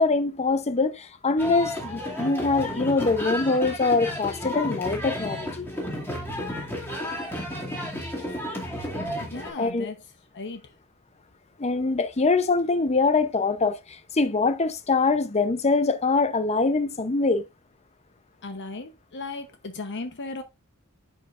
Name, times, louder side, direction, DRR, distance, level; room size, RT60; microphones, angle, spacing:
voice 1, 0.0-5.7 9.6-9.9 11.6-17.4, left 3 dB, 30° left, 0.8 m, -23 dB
sound 1, 1.4-9.5, left 1 dB, 10° left, 2.4 m, -32 dB
voice 2, 9.2-10.0 10.3-10.6 18.4-20.4, left 3 dB, 55° left, 1.0 m, -36 dB
10.5 x 5.6 x 2.5 m
head